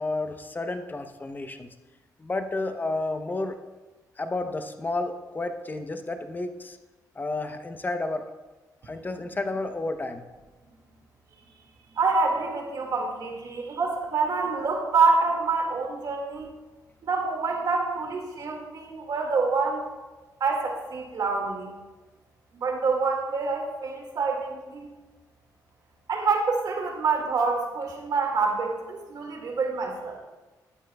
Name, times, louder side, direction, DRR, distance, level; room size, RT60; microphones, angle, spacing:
voice 1, 0.0-1.7 2.2-3.6 4.2-6.8 7.2-8.2 8.9-10.2, left 2 dB, 25° left, 7 dB, 0.8 m, -31 dB
voice 2, 11.9-16.5 17.0-19.8 20.4-21.8 22.5-24.9 26.1-30.2, right 4 dB, 65° right, 1 dB, 2.1 m, -26 dB
13.0 x 9.1 x 2.3 m, 1.2 s
cardioid pair, 80°, 7 cm